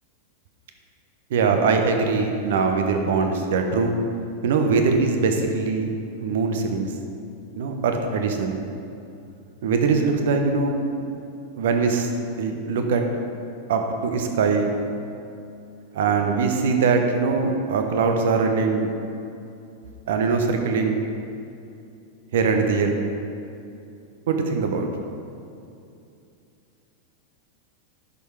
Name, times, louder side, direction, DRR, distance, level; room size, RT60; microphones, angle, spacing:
voice 1, 1.3-4.0 4.4-5.9 6.2-6.9 7.6-8.6 9.6-11.0 11.6-12.1 12.4-13.0 13.7-14.7 15.9-18.9 20.1-21.0 22.3-23.0 24.3-24.9, right 4 dB, 55° right, 4 dB, 1.0 m, -22 dB
10.5 x 6.6 x 4.8 m, 2.6 s
figure-of-eight pair, 90°, 0 cm